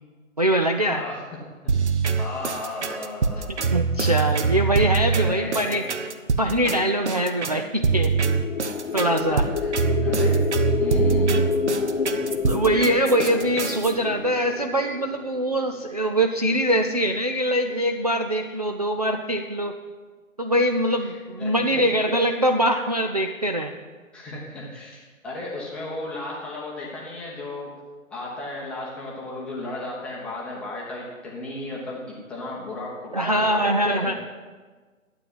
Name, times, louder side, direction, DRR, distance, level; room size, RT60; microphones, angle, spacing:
voice 1, 0.4-1.0 3.7-5.9 6.4-8.1 8.9-9.4 12.5-19.8 20.4-23.7 33.1-34.1, right 1 dB, 30° right, 5 dB, 0.5 m, -23 dB
sound 1, 1.7-13.9, right 5 dB, 55° right, 1.1 m, -24 dB
voice 2, 2.2-3.5 5.1-5.8 9.2-9.7 10.0-10.4 10.8-11.4 21.0-21.9 24.1-27.7 28.1-32.0 32.3-34.1, left 2 dB, 5° left, -5 dB, 0.8 m, -35 dB
sound 2, 7.8-15.9, left 5 dB, 50° left, 0.9 m, -28 dB
12.5 x 8.6 x 7.6 m, 1.4 s
figure-of-eight pair, 145°, 41 cm